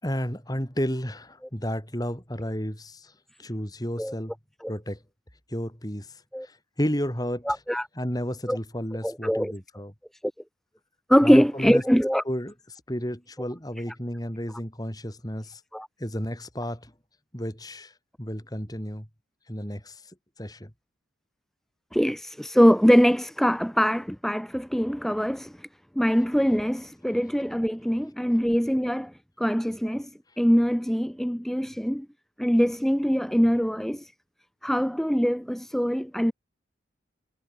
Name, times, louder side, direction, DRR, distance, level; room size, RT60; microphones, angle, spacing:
voice 1, 0.0-3.1 3.4-4.3 4.7-5.0 5.5-7.5 8.0-9.9 11.2-11.8 12.3-15.6 16.0-16.9 17.3-19.1 19.5-20.1 20.4-20.7, equal, 20° left, 5.5 m, -32 dB
voice 2, 7.5-7.9 8.5-8.6 9.0-9.5 11.1-12.2 15.7-15.9 21.9-25.7 26.0-29.1 29.4-30.1 30.4-32.1 32.4-34.1 34.6-36.3, equal, ahead, 0.9 m, -23 dB
head